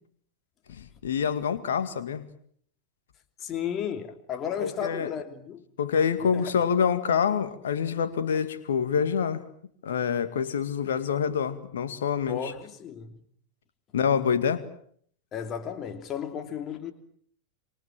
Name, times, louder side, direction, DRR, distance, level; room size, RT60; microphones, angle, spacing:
voice 1, 0.7-2.2 4.6-5.1 5.8-9.4 9.8-12.5 13.9-14.7, left 7 dB, 60° left, 2.1 m, -26 dB
voice 2, 3.4-5.6 6.3-6.5 12.3-13.2 15.3-16.9, left 8 dB, 30° left, 3.1 m, -34 dB
27.0 x 25.0 x 7.7 m
figure-of-eight pair, 90°, 0 cm